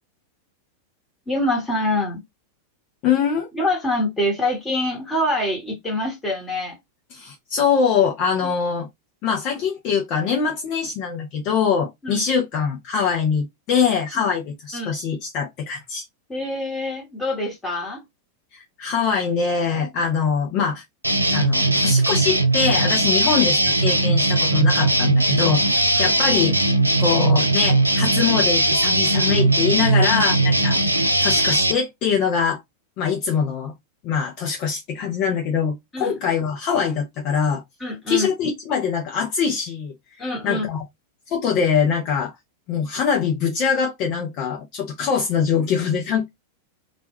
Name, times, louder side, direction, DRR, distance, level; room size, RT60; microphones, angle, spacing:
voice 1, 1.3-2.2 3.5-6.8 8.4-8.5 12.0-12.2 14.1-14.3 14.7-14.9 16.3-18.0 25.9-26.2 35.9-36.1 37.8-38.3 40.2-40.7, left 1 dB, 15° left, 1.1 m, -25 dB
voice 2, 3.0-3.5 7.1-8.9 9.2-16.0 18.5-20.8 21.3-26.5 27.0-31.0 31.2-32.6 33.0-33.7 34.0-37.6 38.1-39.9 40.4-40.8 41.3-42.3 42.7-46.3, left 6 dB, 40° left, 0.6 m, -23 dB
sound 1, 21.0-31.7, right 2 dB, 85° right, 0.3 m, -19 dB
2.2 x 2.1 x 2.9 m
figure-of-eight pair, 90°, 0 cm